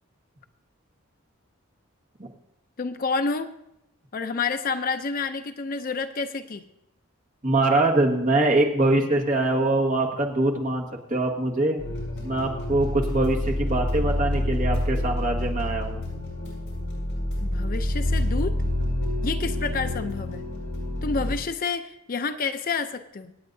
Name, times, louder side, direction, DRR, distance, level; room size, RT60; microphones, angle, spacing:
voice 1, 2.8-3.5 4.1-6.7 17.4-18.6 19.2-20.4 21.0-23.3, left 4 dB, 40° left, 9 dB, 0.5 m, -29 dB
voice 2, 7.4-11.8 12.2-16.0, right 2 dB, 35° right, 0 dB, 1.6 m, -23 dB
sound 1, 11.8-21.3, left 1 dB, 60° left, 6.0 m, -27 dB
25.5 x 8.7 x 2.7 m, 0.83 s
head